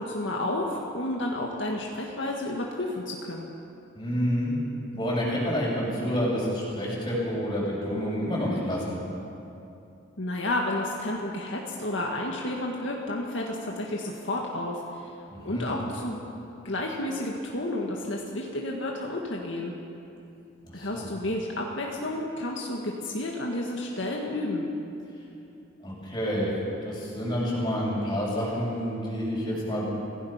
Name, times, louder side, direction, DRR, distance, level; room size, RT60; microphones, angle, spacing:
voice 1, 0.0-3.5 10.2-15.1 15.4-16.2 16.6-19.7 20.7-24.7, left 1 dB, 70° left, -1 dB, 1.9 m, -31 dB
voice 2, 3.9-4.5 4.9-9.0 15.3-15.7 20.8-21.1 25.8-26.5 26.8-29.8, equal, 20° left, -5 dB, 6.6 m, -28 dB
26.0 x 17.0 x 5.8 m, 2.8 s
head